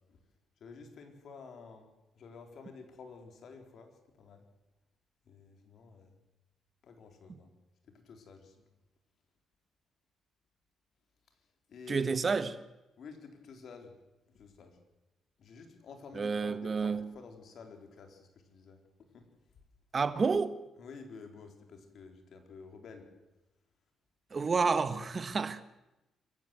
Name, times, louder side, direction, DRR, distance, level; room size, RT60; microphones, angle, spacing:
voice 1, 0.6-4.4 5.2-6.2 6.8-7.5 7.9-8.6 11.7-12.3 13.0-14.0 14.3-14.8 15.4-18.8 19.1-19.3 20.8-23.1, left 5 dB, 60° left, 4.1 m, -51 dB
voice 2, 11.9-12.5 16.1-17.1 19.9-20.6 24.3-25.6, right 4 dB, 35° right, 1.4 m, -30 dB
25.5 x 15.5 x 8.0 m
cardioid pair, 90°, 0 cm